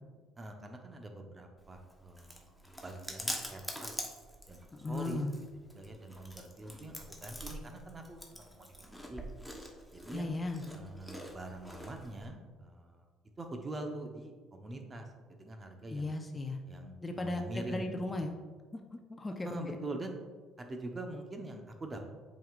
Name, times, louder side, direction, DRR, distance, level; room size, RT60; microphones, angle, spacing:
voice 1, 0.4-3.9 4.5-5.2 5.7-8.7 9.1-9.2 9.9-10.4 10.7-13.1 13.4-16.1 16.7-18.0 19.4-20.2 20.6-22.0, right 2 dB, 30° right, 4 dB, 1.0 m, -44 dB
Chewing mastication, 1.6-12.3, equal, ahead, 1.1 m, -45 dB
voice 2, 4.8-5.3 10.1-10.6 15.9-16.6 17.0-18.3 18.7-18.8 19.1-19.8, left 2 dB, 25° left, 4 dB, 0.6 m, -36 dB
7.5 x 5.2 x 2.5 m, 1.4 s
hypercardioid pair, 65°, 0 cm